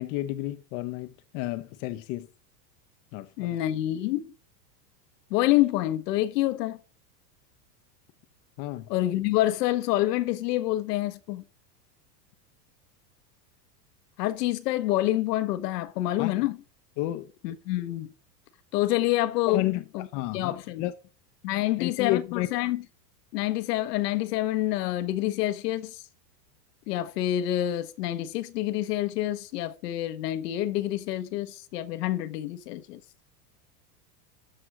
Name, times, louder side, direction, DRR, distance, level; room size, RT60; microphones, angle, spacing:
voice 1, 0.0-2.3 3.1-3.6 8.6-8.9 16.2-16.5 17.0-17.3 19.5-20.9 21.8-22.5, left 16 dB, 45° left, 0.9 m, -31 dB
voice 2, 3.4-4.3 5.3-6.8 8.9-11.4 14.2-16.6 17.4-18.1 18.7-19.6 19.9-20.1 20.3-20.9 21.4-22.8 23.3-26.0 26.9-33.0, left 15 dB, 70° left, 1.2 m, -27 dB
12.5 x 4.4 x 6.0 m
supercardioid pair, 135°, 50 cm